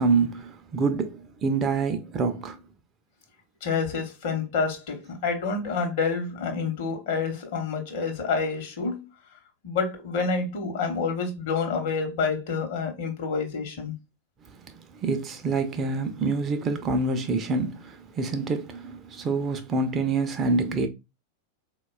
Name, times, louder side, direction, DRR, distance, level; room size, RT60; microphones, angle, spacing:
voice 1, 0.0-2.6 14.9-20.9, right 3 dB, 25° right, 0.4 m, -26 dB
voice 2, 3.6-9.0 9.6-13.9, left 4 dB, 50° left, 0.8 m, -28 dB
3.9 x 2.2 x 2.3 m
figure-of-eight pair, 90°, 0 cm